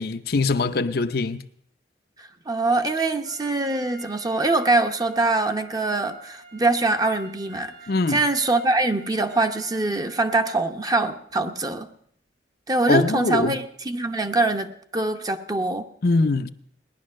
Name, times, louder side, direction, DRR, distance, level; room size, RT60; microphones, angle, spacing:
voice 1, 0.0-1.4 7.9-8.2 12.9-13.6 16.0-16.5, left 3 dB, 60° left, 0.7 m, -22 dB
voice 2, 2.5-7.7 8.1-11.9 12.7-15.8, right 2 dB, 20° right, 0.8 m, -23 dB
Trumpet, 3.2-10.6, right 3 dB, 80° right, 7.7 m, -47 dB
18.0 x 11.0 x 6.4 m
head